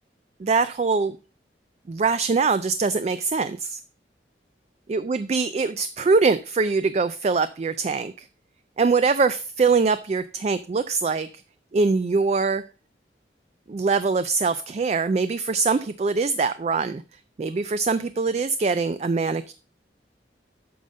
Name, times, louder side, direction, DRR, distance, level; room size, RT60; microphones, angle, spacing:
voice 1, 0.4-1.2 1.9-3.8 4.9-8.3 8.8-11.3 11.7-12.6 13.7-17.0 17.4-19.5, right 4 dB, 35° right, 13 dB, 0.3 m, -23 dB
8.6 x 5.6 x 5.1 m, 0.37 s
head